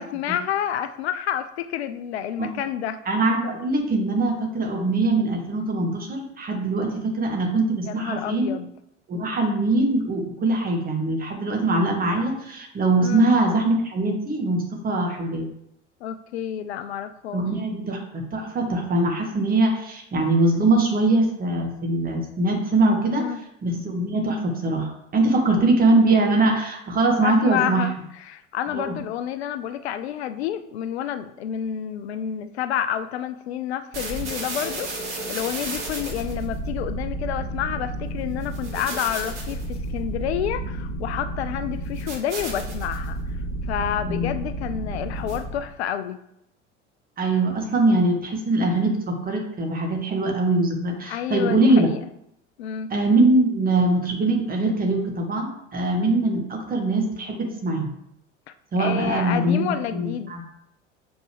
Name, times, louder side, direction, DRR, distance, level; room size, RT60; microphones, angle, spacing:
voice 1, 0.0-3.0 7.9-8.7 13.0-13.3 16.0-17.4 23.1-23.4 27.2-43.4 43.7-46.2 51.1-52.0 52.6-52.9 58.5-60.3, left 10 dB, 60° left, 10 dB, 0.5 m, -29 dB
voice 2, 3.0-8.5 9.1-15.4 17.3-23.3 23.6-27.9 28.7-29.0 44.1-44.3 47.2-51.9 52.9-57.9 58.7-60.4, right 2 dB, 25° right, 2 dB, 1.6 m, -22 dB
sound 1, 33.9-45.7, right 2 dB, 70° right, 1.6 m, -31 dB
7.0 x 5.2 x 3.2 m, 0.77 s
figure-of-eight pair, 70°, 36 cm